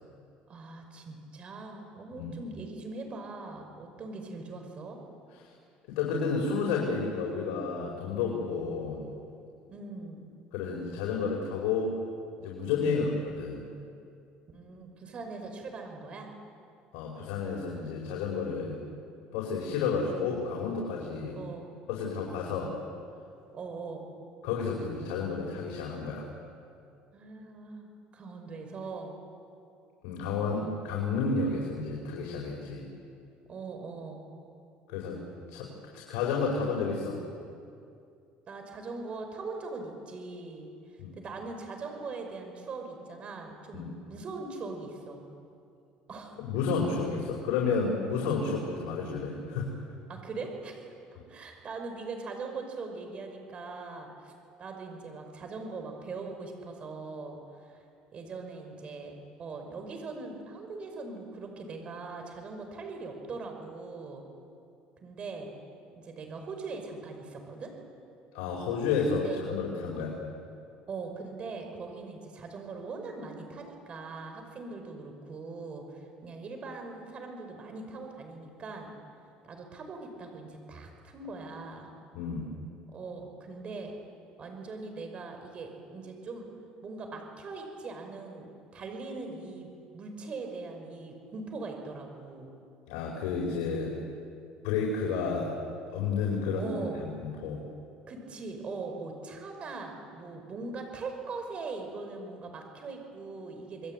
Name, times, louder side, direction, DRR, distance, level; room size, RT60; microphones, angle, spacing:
voice 1, 0.5-5.0 9.7-10.2 12.8-13.1 14.5-16.3 21.4-21.7 23.5-24.0 27.1-29.1 30.4-30.7 33.5-34.2 38.5-40.7 41.2-45.2 46.1-46.4 50.1-50.9 51.3-54.3 54.6-57.8 58.1-59.1 59.4-64.2 65.0-65.5 65.9-67.7 69.1-69.4 70.9-78.9 79.4-81.9 82.9-83.9 84.4-86.5 86.8-92.5 96.6-97.1 98.1-103.9, right 3 dB, 35° right, 4 dB, 5.7 m, -41 dB
voice 2, 5.9-9.1 10.5-12.0 12.4-13.6 16.9-18.8 19.3-21.4 21.9-22.7 24.4-26.3 30.0-32.9 34.9-35.2 35.5-37.2 41.0-41.2 43.7-43.9 46.4-49.7 68.3-70.2 82.1-82.5 92.9-94.0 94.6-95.6 95.9-97.6, left 5 dB, 90° left, -1 dB, 5.0 m, -31 dB
27.5 x 21.5 x 9.3 m, 2.5 s
cardioid pair, 120°, 3 cm